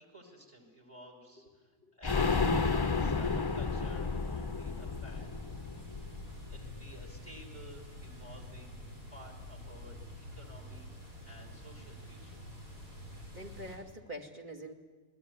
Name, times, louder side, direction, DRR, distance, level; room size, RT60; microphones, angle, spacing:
voice 1, 0.0-5.6 5.8-6.1 6.5-12.4, equal, 20° right, 3 dB, 5.3 m, -54 dB
sound 1, 2.0-7.6 8.0-8.1 8.4-8.5, left 4 dB, 25° left, 0.6 m, -32 dB
sound 2, 2.9-13.8, left 1 dB, 85° right, 7.7 m, -48 dB
voice 2, 13.3-14.7, equal, 35° right, 2 dB, 2.7 m, -44 dB
29.0 x 20.5 x 9.7 m, 1.4 s
omnidirectional pair, 1.4 m